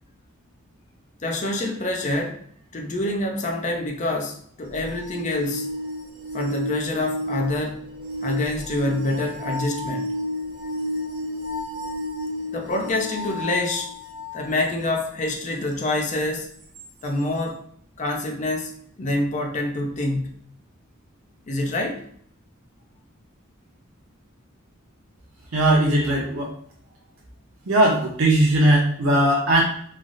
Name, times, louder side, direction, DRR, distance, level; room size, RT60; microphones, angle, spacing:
voice 1, 1.2-2.4 2.7-5.7 6.3-7.8 8.2-10.1 12.5-13.9 14.3-16.5 17.0-17.6 18.0-20.4 21.5-22.0, left 2 dB, 35° left, 2 dB, 0.5 m, -26 dB
sound 1, 4.7-14.4 16.7-16.8, left 1 dB, 45° right, 1.0 m, -31 dB
voice 2, 25.5-26.5 27.7-29.6, right 1 dB, 75° right, -3 dB, 0.7 m, -19 dB
3.1 x 2.4 x 2.5 m, 0.62 s
head